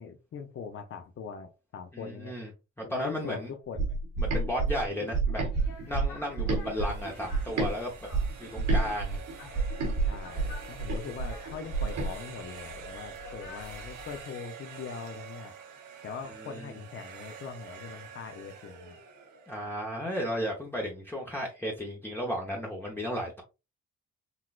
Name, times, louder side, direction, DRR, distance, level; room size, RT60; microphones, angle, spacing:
voice 1, 0.0-2.3 2.8-4.0 10.1-15.5 16.0-19.0, left 6 dB, 45° left, 0.6 m, -42 dB
voice 2, 1.9-2.5 2.8-3.5 4.2-5.4 5.9-7.9 8.4-9.2 16.5-16.7 19.5-23.4, equal, 5° left, 0.8 m, -34 dB
sound 1, 3.8-7.7 8.1-12.1, right 3 dB, 65° right, 1.3 m, -29 dB
sound 2, 5.5-14.2, left 4 dB, 85° left, 1.0 m, -49 dB
sound 3, 6.5-20.4, right 7 dB, 80° right, 1.0 m, -47 dB
4.0 x 2.3 x 2.3 m
cardioid pair, 90°, 30 cm